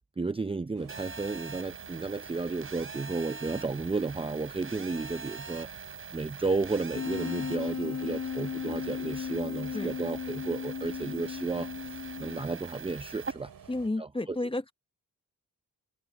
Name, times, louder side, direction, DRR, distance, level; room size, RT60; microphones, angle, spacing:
voice 1, 0.2-5.7 6.1-13.5 14.0-14.4, right 3 dB, 15° right, 0.6 m, -33 dB
sound 1, 0.7-13.9, right 7 dB, 85° right, 7.6 m, -51 dB
Telephone, 0.9-13.3, right 4 dB, 40° right, 3.8 m, -43 dB
Wind instrument woodwind instrument, 6.9-12.6, left 7 dB, 55° left, 1.4 m, -36 dB
voice 2, 13.7-14.7, left 2 dB, 15° left, 1.1 m, -32 dB
wide cardioid pair, 105°, 34 cm